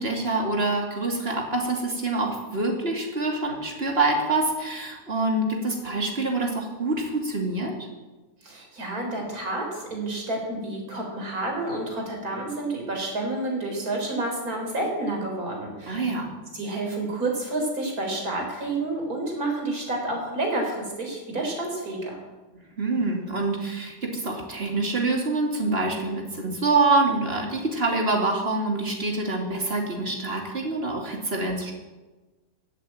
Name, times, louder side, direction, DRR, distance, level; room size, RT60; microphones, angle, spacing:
voice 1, 0.0-7.9 15.9-16.3 22.8-31.7, right 2 dB, 35° right, 1 dB, 2.8 m, -26 dB
voice 2, 8.4-16.1 16.5-22.2, right 2 dB, 55° right, 1 dB, 4.3 m, -29 dB
15.0 x 8.3 x 8.9 m, 1.2 s
omnidirectional pair, 1.9 m